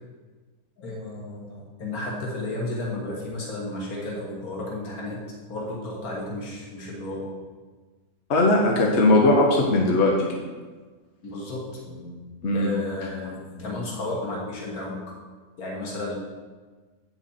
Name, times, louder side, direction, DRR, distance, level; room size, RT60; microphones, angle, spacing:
voice 1, 0.8-5.2 5.5-7.3 11.2-12.3 12.5-15.1 15.6-16.1, left 2 dB, 80° left, -3 dB, 1.8 m, -33 dB
voice 2, 8.3-10.4 12.4-12.7, left 2 dB, 55° left, -1 dB, 1.2 m, -19 dB
8.3 x 6.0 x 4.3 m, 1.4 s
omnidirectional pair, 1.5 m